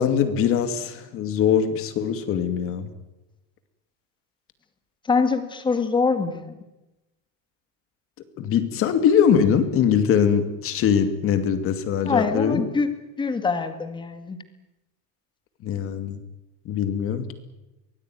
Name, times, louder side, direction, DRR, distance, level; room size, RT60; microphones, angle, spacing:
voice 1, 0.0-2.9 8.4-12.6 15.6-16.2 16.6-17.3, left 8 dB, 35° left, 10 dB, 2.5 m, -22 dB
voice 2, 5.1-6.5 12.1-12.9 13.2-14.4, left 4 dB, 10° left, 9 dB, 2.0 m, -24 dB
24.0 x 19.0 x 9.5 m, 0.98 s
cardioid pair, 175°, 37 cm